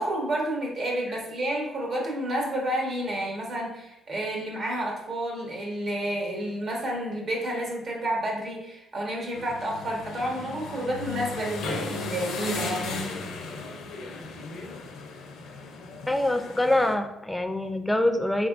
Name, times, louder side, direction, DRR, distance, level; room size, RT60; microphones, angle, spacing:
voice 1, 0.0-13.0, right 1 dB, 55° right, -1 dB, 1.1 m, -30 dB
sound 1, 9.3-16.9, left 3 dB, 85° left, 0.6 m, -36 dB
voice 2, 16.1-18.5, left 1 dB, 5° left, 7 dB, 0.4 m, -25 dB
3.5 x 3.4 x 2.4 m, 0.91 s
cardioid pair, 90°, 0 cm